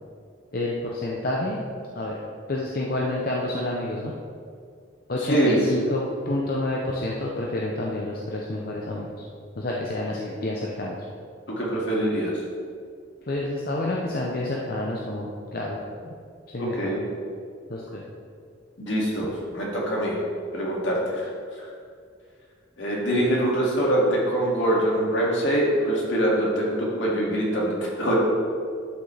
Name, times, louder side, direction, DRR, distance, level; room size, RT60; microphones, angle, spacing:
voice 1, 0.5-1.6 1.9-2.2 2.5-4.2 5.1-9.1 9.6-11.0 13.3-16.2 16.5-16.9 17.7-18.0, left 2 dB, 50° left, -3 dB, 0.7 m, -29 dB
voice 2, 5.3-5.6 11.6-12.3 16.6-17.0 18.8-20.2 20.5-21.3 22.8-28.1, right 1 dB, 70° left, -4 dB, 2.2 m, -24 dB
11.5 x 6.0 x 3.4 m, 2.2 s
head